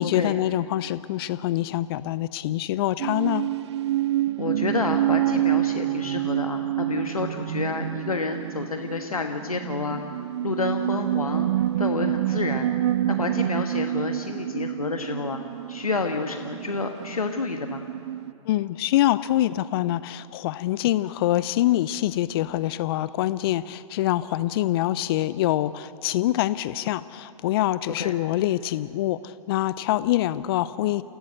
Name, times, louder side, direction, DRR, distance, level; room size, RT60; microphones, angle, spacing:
voice 1, 0.0-3.4 18.5-31.0, left 14 dB, 45° left, 16 dB, 0.5 m, -25 dB
sound 1, 3.0-18.3, right 13 dB, 50° right, 0.4 m, -27 dB
voice 2, 4.4-10.0 10.4-11.5 11.8-12.7 13.1-15.4 15.7-17.8 28.0-28.1, left 4 dB, 90° left, 5 dB, 1.4 m, -29 dB
29.0 x 16.0 x 7.8 m, 2.7 s
figure-of-eight pair, 120°, 18 cm